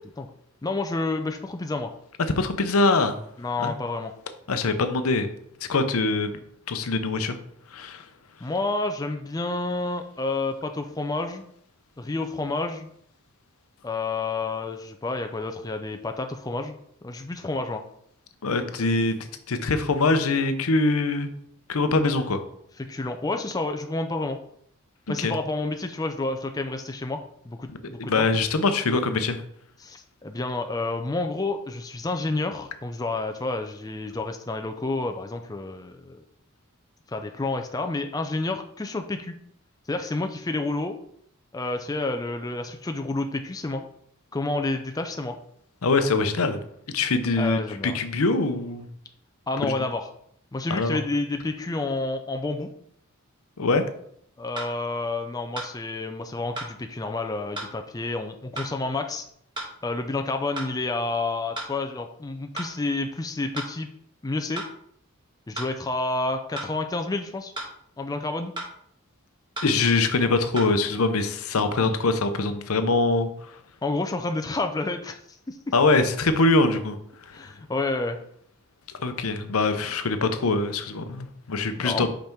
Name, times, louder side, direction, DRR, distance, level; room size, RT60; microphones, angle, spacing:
voice 1, 0.6-1.9 3.4-4.1 8.4-11.4 12.0-12.9 13.8-17.8 22.9-24.4 25.1-28.3 29.8-36.2 37.1-39.3 39.9-40.9 41.5-43.8 44.3-45.4 47.4-48.0 49.5-50.1 50.5-52.7 54.4-59.2 59.8-63.9 64.2-64.6 65.5-67.5 68.0-68.5 73.8-75.2 75.5-75.6 77.3-78.2 81.8-82.1, left 2 dB, 15° left, 5 dB, 0.4 m, -29 dB
voice 2, 2.4-3.2 3.6-3.7 4.5-5.3 5.7-6.4 6.7-7.4 7.7-8.1 18.4-21.3 21.7-22.4 25.2-25.4 28.0-29.4 45.8-46.6 46.9-48.9 49.6-49.7 50.7-51.0 53.6-53.8 69.6-73.5 75.7-77.5 79.0-82.1, left 3 dB, 75° left, 9 dB, 0.7 m, -23 dB
sound 1, 54.6-54.7 55.6-55.7 56.6-56.7 57.6-57.7 58.6-58.7 59.6-59.7 60.6-60.7 61.6-61.7 62.6-62.7 63.6-63.7 64.6-64.7 65.6-65.7 66.6-66.7 67.6-67.7 68.6-68.7 69.6-69.7 70.6-70.7, right 1 dB, 20° right, 1.5 m, -34 dB
5.5 x 5.0 x 4.5 m, 0.69 s
head